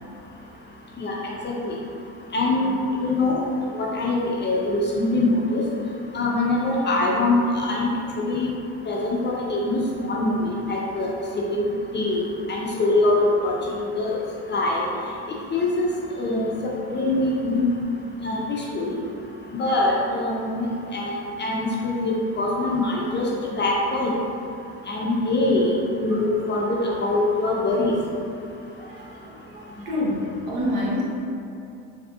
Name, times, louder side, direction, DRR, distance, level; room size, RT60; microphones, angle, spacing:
voice 1, 1.4-1.7 2.3-2.8 3.0-3.4 3.7-5.6 6.1-7.9 8.2-8.5 8.8-11.1 11.5-11.7 11.9-12.2 12.5-14.2 14.5-14.8 15.5-15.9 16.2-16.5 16.9-17.7 18.2-19.0 19.5-20.7 20.9-23.3 23.6-24.1 24.9-25.7 26.0-27.9, left 2 dB, 25° left, -3 dB, 0.4 m, -23 dB
voice 2, 28.7-31.0, left 1 dB, 75° right, -5 dB, 0.9 m, -28 dB
3.4 x 2.7 x 2.3 m, 2.6 s
hypercardioid pair, 70°, 44 cm